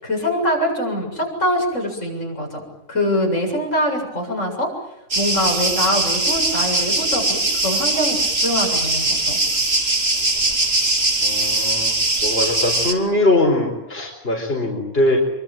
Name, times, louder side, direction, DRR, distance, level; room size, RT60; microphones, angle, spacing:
voice 1, 0.0-4.7 5.1-9.4, equal, 80° left, 1 dB, 8.0 m, -23 dB
sound 1, 5.1-12.9, right 2 dB, 55° right, 3.2 m, -21 dB
voice 2, 11.2-11.9 12.2-15.2, left 2 dB, 55° left, 1 dB, 4.7 m, -21 dB
27.0 x 24.0 x 9.0 m, 0.86 s
omnidirectional pair, 1.3 m